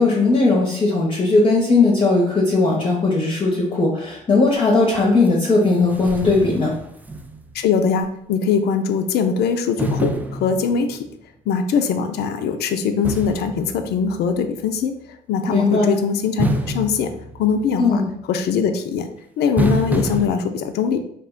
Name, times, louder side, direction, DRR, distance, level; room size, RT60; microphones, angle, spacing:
voice 1, 0.0-6.7 15.5-15.9 17.8-18.1, left 3 dB, 30° left, -2 dB, 0.7 m, -18 dB
sound 1, 5.2-5.3 5.6-7.7 8.0-8.1 9.8-11.1 13.0-14.5 16.4-17.9 19.6-20.3, right 1 dB, 10° right, 0.3 m, -27 dB
voice 2, 7.5-10.1 10.4-11.0 11.5-14.9 15.3-16.5 16.7-17.1 17.4-18.0 18.3-19.1 19.4-21.0, left 6 dB, 60° left, 7 dB, 0.4 m, -21 dB
2.4 x 2.1 x 3.7 m, 0.73 s
supercardioid pair, 70°, 19 cm